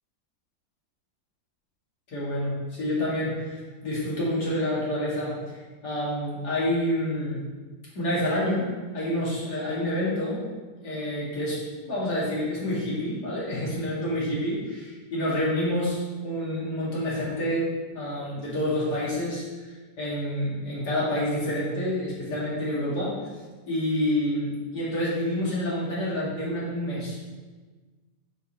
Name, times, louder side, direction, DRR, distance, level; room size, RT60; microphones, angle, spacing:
voice 1, 2.1-5.6 5.8-7.4 7.9-8.7 8.9-10.4 10.8-17.7 17.9-19.4 20.0-23.1 23.7-27.2, left 1 dB, 75° left, -8 dB, 2.8 m, -28 dB
8.0 x 5.2 x 4.3 m, 1.3 s
omnidirectional pair, 1.8 m